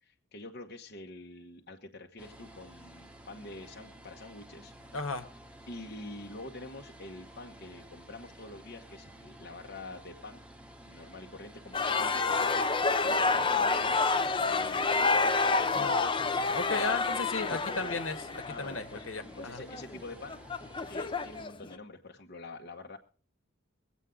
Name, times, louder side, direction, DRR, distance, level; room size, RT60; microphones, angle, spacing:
voice 1, 0.0-4.7 5.7-10.4 10.8-15.8 17.5-18.0 18.5-19.1 19.4-20.4 20.9-23.0, left 2 dB, 50° left, 2 dB, 1.1 m, -46 dB
sound 1, 2.2-21.5, right 1 dB, 5° right, 0.8 m, -52 dB
voice 2, 4.9-5.3 15.7-18.2 18.5-19.6, left 4 dB, 75° left, 8 dB, 1.5 m, -35 dB
sound 2, 11.7-21.7, left 4 dB, 25° left, 0.6 m, -29 dB
23.0 x 8.2 x 3.8 m, 0.39 s
head